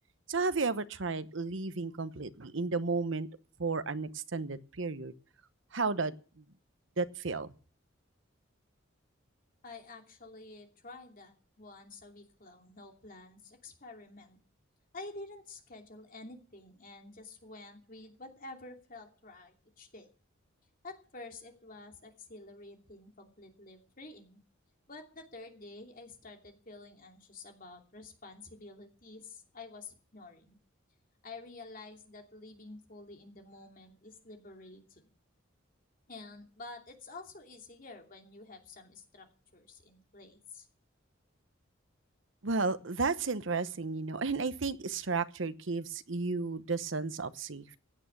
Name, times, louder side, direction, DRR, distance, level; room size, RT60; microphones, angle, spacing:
voice 1, 0.3-3.3 3.6-5.1 5.7-6.2 7.0-7.5 42.4-47.8, right 4 dB, 65° right, 13 dB, 0.9 m, -33 dB
voice 2, 9.6-14.4 14.9-20.1 20.8-24.4 24.9-30.6 31.2-35.1 36.1-39.3 39.5-40.7, left 3 dB, 40° left, 3 dB, 2.9 m, -49 dB
16.0 x 8.9 x 8.3 m, 0.40 s
head